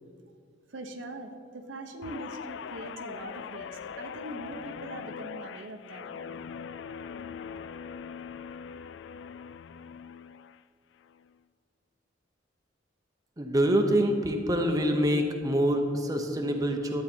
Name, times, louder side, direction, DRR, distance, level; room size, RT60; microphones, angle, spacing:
voice 1, 0.7-6.3, right 1 dB, 75° right, 5 dB, 1.0 m, -42 dB
Guitar, 2.0-10.6 11.0-11.3, left 6 dB, 65° left, 0.3 m, -41 dB
voice 2, 13.4-17.0, equal, 20° right, 3 dB, 0.8 m, -25 dB
12.0 x 8.4 x 4.5 m, 2.2 s
head